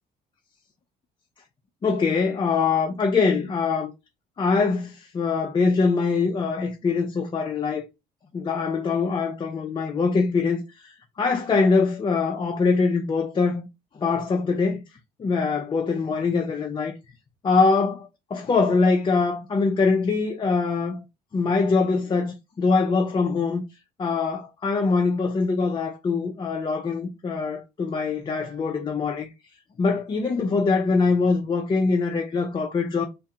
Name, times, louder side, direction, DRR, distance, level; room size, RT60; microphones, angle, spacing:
voice 1, 1.8-3.9 4.4-7.8 8.3-13.7 14.0-14.8 15.2-16.9 17.4-21.0 21.3-23.6 24.0-29.3 29.8-33.1, left 4 dB, 30° left, 0.6 m, -23 dB
3.5 x 2.2 x 2.8 m
cardioid pair, 110°, 17 cm